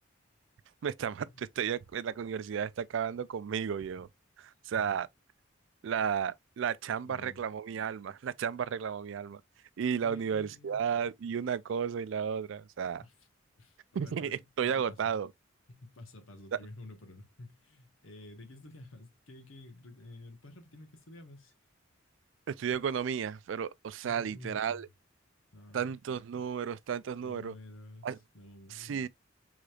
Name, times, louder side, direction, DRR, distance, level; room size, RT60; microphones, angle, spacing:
voice 1, 0.8-4.1 4.4-5.1 5.8-9.4 9.8-13.0 13.9-15.3 16.5-16.6 22.5-24.9 25.7-27.5 28.0-28.2 28.7-29.1, right 7 dB, 65° right, 0.3 m, -33 dB
voice 2, 7.0-7.5 10.0-10.9 13.0-13.1 13.6-15.0 15.7-21.5 24.0-24.9 25.5-26.0 27.2-28.0 28.3-28.9, left 2 dB, 85° left, 1.3 m, -51 dB
4.8 x 3.9 x 2.3 m
head